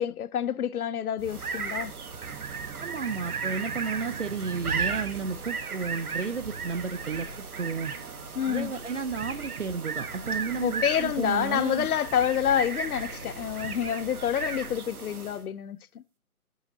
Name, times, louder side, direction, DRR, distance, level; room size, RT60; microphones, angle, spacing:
voice 1, 0.0-1.9 8.4-8.7 10.6-16.0, left 9 dB, 80° left, 0.5 m, -28 dB
sound 1, 1.2-15.5, right 5 dB, 80° right, 1.1 m, -35 dB
voice 2, 2.8-7.3 7.6-7.9 8.5-11.9, right 5 dB, 60° right, 0.5 m, -32 dB
sound 2, 3.7-14.8, left 2 dB, 20° right, 0.9 m, -49 dB
7.1 x 5.6 x 2.7 m
figure-of-eight pair, 170°, 43 cm